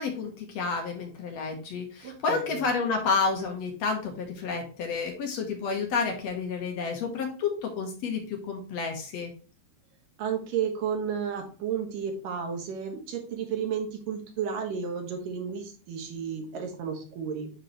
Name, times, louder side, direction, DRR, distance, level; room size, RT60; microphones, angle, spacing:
voice 1, 0.0-9.3, left 5 dB, 65° left, 3 dB, 2.0 m, -30 dB
voice 2, 2.0-2.6 10.2-17.5, right 7 dB, 85° right, 3 dB, 3.1 m, -32 dB
9.9 x 3.9 x 3.0 m, 0.37 s
omnidirectional pair, 3.8 m